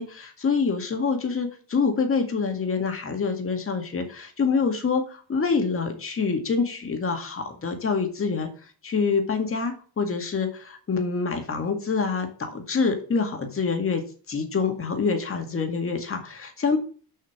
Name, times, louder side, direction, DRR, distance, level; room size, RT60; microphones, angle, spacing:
voice 1, 0.0-8.5 8.8-16.8, left 5 dB, 30° left, 5 dB, 2.0 m, -26 dB
6.6 x 5.6 x 6.1 m, 0.41 s
cardioid pair, 120°, 45 cm